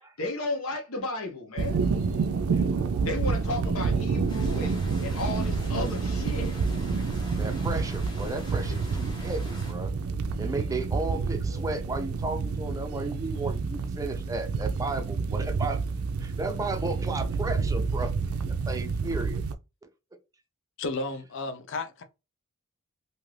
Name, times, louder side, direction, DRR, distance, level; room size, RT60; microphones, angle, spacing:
voice 1, 0.0-1.9 3.0-6.6 8.7-8.8 11.5-11.6, left 2 dB, 75° left, 0.9 m, -34 dB
sound 1, 1.6-19.5, right 4 dB, 80° right, 0.4 m, -29 dB
voice 2, 2.5-3.0 7.4-9.9 10.4-15.8 16.2-18.1 18.7-19.4, right 2 dB, 15° right, 0.5 m, -34 dB
sound 2, 4.3-9.7, equal, 20° left, 0.7 m, -42 dB
voice 3, 20.8-22.0, left 3 dB, 60° left, 0.5 m, -33 dB
2.7 x 2.5 x 3.1 m
head